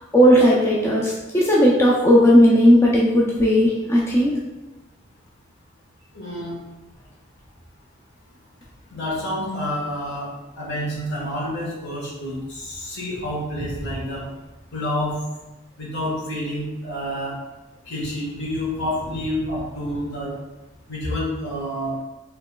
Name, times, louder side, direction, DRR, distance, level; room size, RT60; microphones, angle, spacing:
voice 1, 0.1-4.4, equal, 15° left, -4 dB, 0.4 m, -16 dB
voice 2, 6.1-6.5 8.9-10.3 10.6-14.2 14.7-15.1 15.8-17.3 17.9-20.3 20.9-21.9, left 1 dB, 60° left, -5 dB, 1.3 m, -28 dB
4.6 x 2.9 x 2.2 m, 1.1 s
head